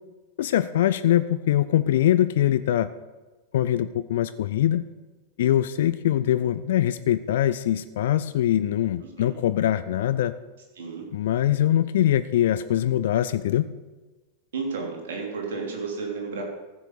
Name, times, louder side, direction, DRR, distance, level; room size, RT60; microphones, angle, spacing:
voice 1, 0.4-2.9 3.5-4.8 5.4-10.3 11.1-13.7, left 12 dB, 55° left, 13 dB, 0.4 m, -23 dB
voice 2, 9.0-9.4 10.8-11.1 14.5-16.4, right 4 dB, 60° right, 0 dB, 3.1 m, -32 dB
14.5 x 6.2 x 6.7 m, 1.2 s
figure-of-eight pair, 90°, 0 cm